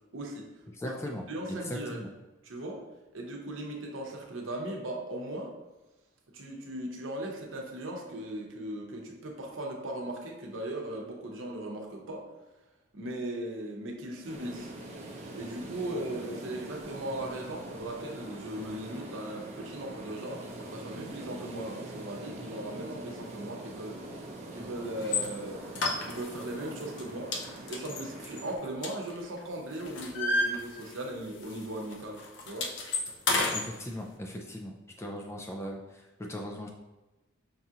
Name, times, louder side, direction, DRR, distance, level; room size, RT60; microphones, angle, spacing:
voice 1, 0.1-0.5 0.8-1.0 1.3-2.0 2.4-2.8 3.1-5.5 6.3-12.2 12.9-14.7 15.3-24.0 24.5-25.6 26.1-27.3 27.7-32.7, right 1 dB, 80° right, 0 dB, 0.8 m, -38 dB
voice 2, 0.7-1.2 1.7-2.1 33.5-36.7, left 1 dB, 15° left, 0 dB, 0.3 m, -39 dB
sound 1, 14.2-28.6, right 1 dB, 35° right, 0.6 m, -43 dB
sound 2, 25.0-25.3 25.7-26.5 26.8-27.0 27.3-29.4 29.7-31.2 31.4-31.6 31.9-33.7, left 2 dB, 65° left, 0.5 m, -31 dB
5.4 x 2.4 x 2.8 m, 1.1 s
head